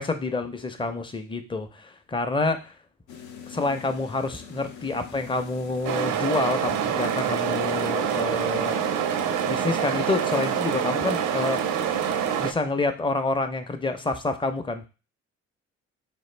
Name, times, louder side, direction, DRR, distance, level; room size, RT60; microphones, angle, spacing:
voice 1, 0.0-2.7 3.5-8.8 9.5-11.6 12.4-14.9, left 3 dB, 15° left, 7 dB, 0.6 m, -28 dB
sound 1, 3.1-12.4, left 7 dB, 75° left, 0.7 m, -42 dB
sound 2, 5.8-12.5, right 9 dB, 85° right, 0.5 m, -26 dB
4.9 x 2.4 x 3.2 m, 0.32 s
cardioid pair, 90°, 30 cm